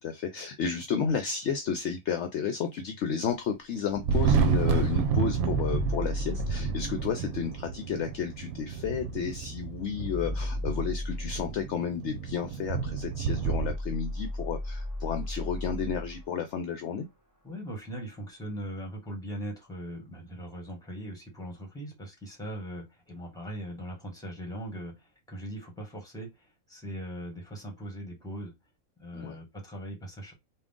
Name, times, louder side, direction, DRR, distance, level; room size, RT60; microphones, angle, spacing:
voice 1, 0.0-17.1 29.1-29.4, left 6 dB, 65° left, 0.8 m, -32 dB
Thunder, 3.9-13.7, right 6 dB, 85° right, 1.0 m, -30 dB
sound 1, 5.3-16.6, left 1 dB, 15° right, 1.9 m, -37 dB
voice 2, 17.4-28.5 29.0-30.3, equal, 5° left, 1.3 m, -40 dB
3.6 x 2.5 x 3.6 m
omnidirectional pair, 1.4 m